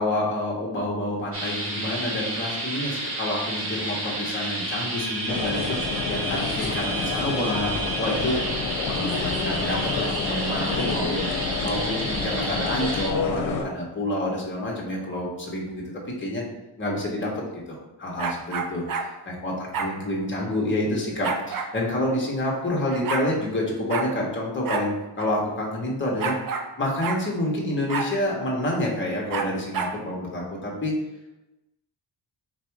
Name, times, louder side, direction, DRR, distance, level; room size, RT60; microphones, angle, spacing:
voice 1, 0.0-8.4 8.9-15.8 16.2-16.4 16.8-17.3 17.7-18.8 19.2-26.3 26.8-30.9, left 1 dB, 25° left, -2 dB, 1.0 m, -28 dB
sound 1, 1.3-13.1, right 1 dB, 30° right, 1.2 m, -30 dB
sound 2, 5.3-13.6, left 5 dB, 80° left, 0.7 m, -29 dB
sound 3, 18.2-19.1 19.7-19.9 21.2-21.7 22.6-22.7 22.9-23.3 23.9-24.1 24.6-24.9 25.2-25.3 26.2-26.7 27.0-27.2 27.9-28.1 29.3-30.0, right 5 dB, 50° right, 0.4 m, -29 dB
3.5 x 2.6 x 4.5 m, 0.98 s
wide cardioid pair, 130°, 46 cm